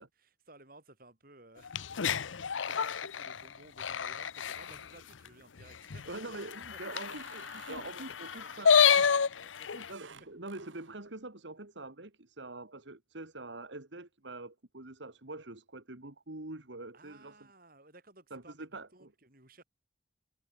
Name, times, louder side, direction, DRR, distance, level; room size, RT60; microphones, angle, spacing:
voice 1, 0.0-6.8 7.8-9.9 16.9-19.6, right 2 dB, 50° right, 5.5 m, -58 dB
sound 1, 1.6-4.8 5.3-5.4 5.6-5.7 5.9-9.9, left 7 dB, 90° left, 0.7 m, -29 dB
sound 2, 4.6-5.1 5.6-6.0 6.4-9.0 9.9-11.0, right 6 dB, 90° right, 2.6 m, -56 dB
voice 2, 6.1-9.0 9.7-17.4 18.3-19.1, right 2 dB, 70° right, 2.2 m, -45 dB
head